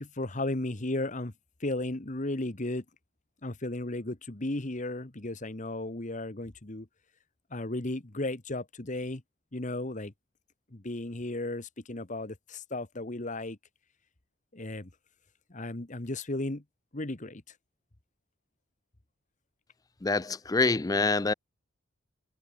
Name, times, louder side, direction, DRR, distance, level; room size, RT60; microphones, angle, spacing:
voice 1, 0.0-1.3 1.6-2.8 3.4-6.9 7.5-9.2 9.5-10.1 10.7-13.6 14.5-14.9 15.5-16.6 16.9-17.4, left 2 dB, 40° left, 1.4 m, -34 dB
voice 2, 20.0-21.3, left 3 dB, 20° left, 0.4 m, -26 dB
head